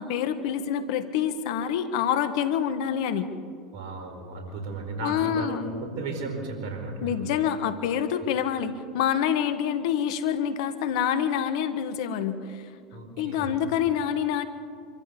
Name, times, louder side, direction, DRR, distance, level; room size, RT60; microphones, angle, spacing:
voice 1, 0.0-3.3 5.0-5.7 7.0-12.7 13.2-14.5, left 9 dB, 65° left, 11 dB, 1.3 m, -27 dB
voice 2, 3.7-7.3 12.9-13.6, right 3 dB, 60° right, 3 dB, 4.6 m, -35 dB
25.5 x 14.0 x 7.1 m, 2.2 s
hypercardioid pair, 85°, 3 cm